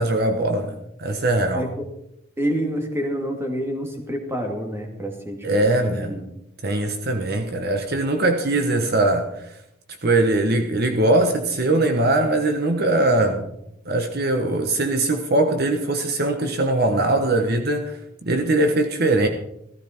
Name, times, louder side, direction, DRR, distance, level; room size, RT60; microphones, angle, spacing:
voice 1, 0.0-1.7 5.4-6.2 6.6-9.5 10.0-13.5 13.8-19.3, right 2 dB, 50° right, 5 dB, 1.2 m, -21 dB
voice 2, 1.5-1.9 2.4-6.3, equal, 10° right, 2 dB, 2.4 m, -28 dB
15.5 x 15.0 x 4.5 m, 0.79 s
head